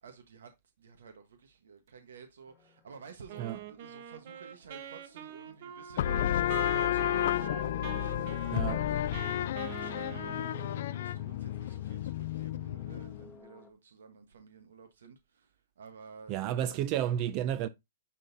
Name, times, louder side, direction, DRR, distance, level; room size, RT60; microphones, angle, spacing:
voice 1, 0.0-0.5 0.8-8.6 9.2-16.8, right 5 dB, 85° right, 1.2 m, -52 dB
sound 1, 2.5-13.7, left 3 dB, 10° left, 1.0 m, -58 dB
Wind instrument woodwind instrument, 3.3-11.0, right 10 dB, 50° right, 1.1 m, -44 dB
sound 2, 6.0-13.3, left 12 dB, 60° left, 0.4 m, -32 dB
voice 2, 8.5-8.9 16.3-17.7, right 11 dB, 35° right, 0.4 m, -31 dB
9.8 x 3.8 x 2.7 m
hypercardioid pair, 150°, 0 cm